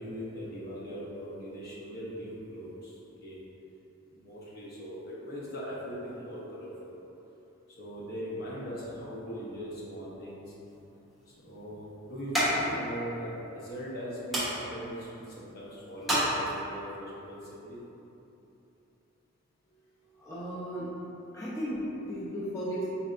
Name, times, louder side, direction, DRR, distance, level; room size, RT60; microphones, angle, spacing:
voice 1, 0.0-3.4 4.1-7.0 7.8-10.4 11.3-17.8, equal, 50° left, -7 dB, 0.9 m, -40 dB
sound 1, 10.6-16.9, equal, ahead, 1.1 m, -34 dB
voice 2, 20.2-20.9 21.3-22.8, equal, 15° left, -9 dB, 0.5 m, -35 dB
4.3 x 3.2 x 2.5 m, 2.9 s
head